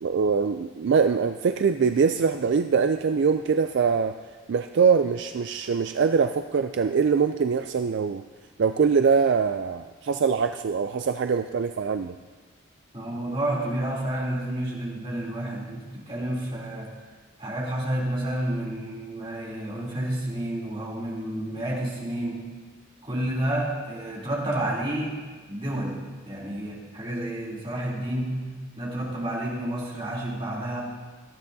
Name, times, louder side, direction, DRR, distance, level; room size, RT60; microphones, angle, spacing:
voice 1, 0.0-4.1 4.5-8.2 8.6-12.1, right 5 dB, 55° right, 8 dB, 0.3 m, -23 dB
voice 2, 12.9-17.0 17.4-22.6 23.0-30.8, right 1 dB, 25° right, -5 dB, 3.1 m, -30 dB
18.5 x 13.0 x 2.7 m, 1.4 s
head